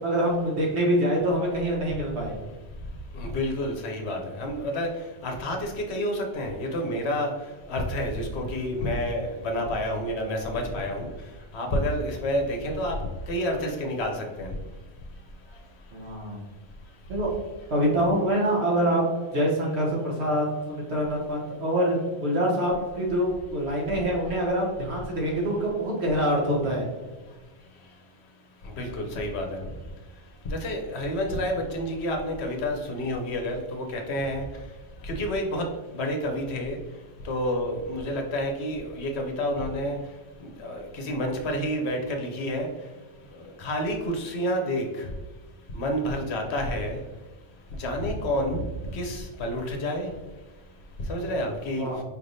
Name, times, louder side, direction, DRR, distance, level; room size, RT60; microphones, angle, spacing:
voice 1, 0.0-2.3 15.9-16.4 17.1-17.3 17.7-19.0 19.3-26.9 51.8-52.0, equal, 60° right, -2 dB, 1.3 m, -25 dB
voice 2, 3.2-4.9 5.2-7.3 7.7-11.1 11.5-12.9 13.3-14.5 28.8-29.6 30.5-34.4 35.0-35.6 35.9-36.8 37.2-40.0 40.6-42.7 43.6-44.8 45.7-47.0 47.8-48.6 48.9-50.1 51.1-51.9, equal, 65° left, 3 dB, 0.9 m, -29 dB
4.7 x 3.3 x 2.6 m, 1.3 s
omnidirectional pair, 1.3 m